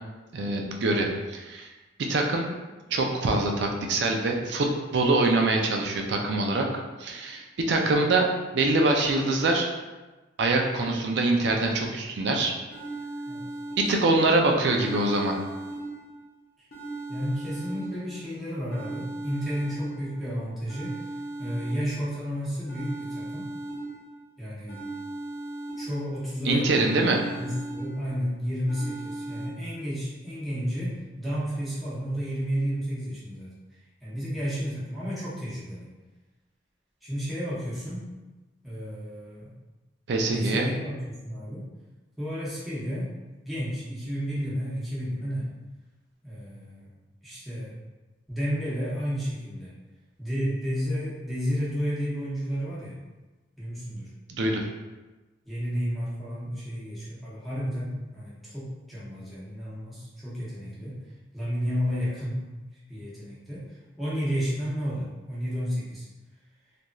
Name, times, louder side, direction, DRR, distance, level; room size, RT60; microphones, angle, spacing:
voice 1, 0.3-1.7 2.0-2.5 2.9-6.7 7.0-8.3 8.5-9.7 10.4-12.5 13.8-15.4 26.5-27.2 40.1-40.7 54.3-54.6, right 2 dB, 65° right, 2 dB, 0.4 m, -24 dB
sound 1, 12.7-14.3 14.7-16.3 16.7-18.3 18.7-20.3 20.7-22.3 22.7-24.3 24.7-26.3 26.7-28.3 28.7-29.5, right 2 dB, 55° left, 0.6 m, -37 dB
voice 2, 13.3-13.8 17.1-21.0 21.4-23.5 24.4-24.9 25.8-27.0 27.4-33.5 34.0-35.9 37.0-38.1 38.6-39.5 40.3-41.7 42.2-43.1 43.4-45.5 46.2-46.9 47.2-47.7 48.3-49.8 50.2-53.0 53.6-54.1 55.4-61.0 61.3-62.5 62.9-63.6 64.0-66.0, equal, ahead, -10 dB, 0.8 m, -32 dB
3.0 x 2.5 x 2.2 m, 1.2 s
head